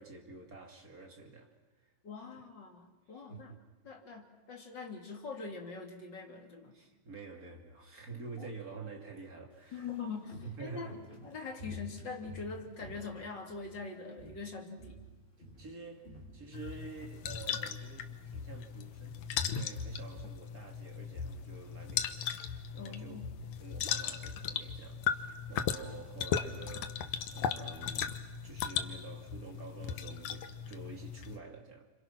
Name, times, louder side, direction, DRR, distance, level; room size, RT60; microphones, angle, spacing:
voice 1, 0.0-1.9 2.3-2.4 3.1-3.6 6.7-9.9 10.4-11.0 15.6-31.9, right 4 dB, 25° right, 2.5 m, -49 dB
voice 2, 2.0-3.6 3.8-6.8 8.4-8.5 9.7-10.9 11.2-15.0 22.8-23.3, left 4 dB, 35° left, 2.5 m, -43 dB
Walk footsteps, 9.5-13.8 14.1-14.5 14.8-17.1 17.4-17.5, left 2 dB, 15° left, 6.5 m, -50 dB
sound 1, 16.5-31.4, left 8 dB, 70° left, 1.9 m, -37 dB
29.5 x 26.5 x 6.0 m
omnidirectional pair, 4.4 m